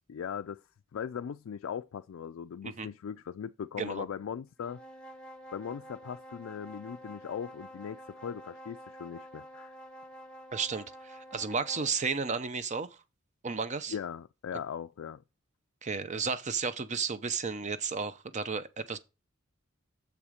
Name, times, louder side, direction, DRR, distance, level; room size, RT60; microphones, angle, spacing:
voice 1, 0.1-0.6 0.9-4.8 5.5-9.8 13.9-15.2, left 7 dB, 80° left, 0.4 m, -39 dB
sound 1, 4.6-12.0, equal, 5° left, 0.9 m, -49 dB
voice 2, 10.5-12.9 13.4-13.9 15.8-19.0, right 5 dB, 35° right, 0.7 m, -33 dB
7.1 x 7.0 x 5.0 m
head